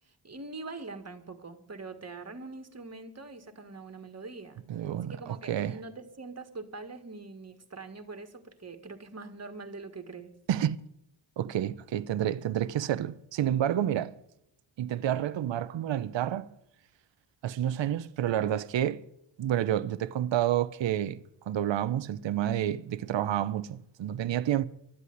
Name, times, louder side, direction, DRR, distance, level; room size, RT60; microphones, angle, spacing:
voice 1, 0.2-4.6 5.0-10.3, right 3 dB, 30° right, 1.9 m, -43 dB
voice 2, 4.7-5.8 10.5-10.8 11.4-14.1 14.8-16.5 17.4-19.0 19.4-24.6, right 11 dB, 65° right, 0.7 m, -29 dB
12.0 x 8.4 x 9.4 m
cardioid pair, 60°, 49 cm